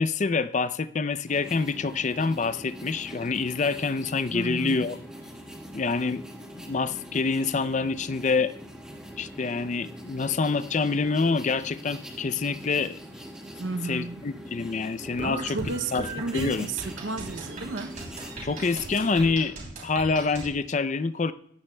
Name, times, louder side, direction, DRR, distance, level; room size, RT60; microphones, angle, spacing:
voice 1, 0.0-5.0 5.7-6.2 6.6-8.5 9.2-13.0 13.8-15.6 15.9-16.0 16.3-16.7 18.4-19.5 19.8-21.3, left 4 dB, 35° left, 0.4 m, -26 dB
sound 1, 1.3-19.3, equal, 5° right, 1.5 m, -43 dB
voice 2, 4.3-4.8 13.6-14.2 15.2-18.0, right 3 dB, 65° right, 0.6 m, -33 dB
sound 2, 15.0-20.5, right 2 dB, 40° right, 2.9 m, -38 dB
15.5 x 13.0 x 2.2 m
head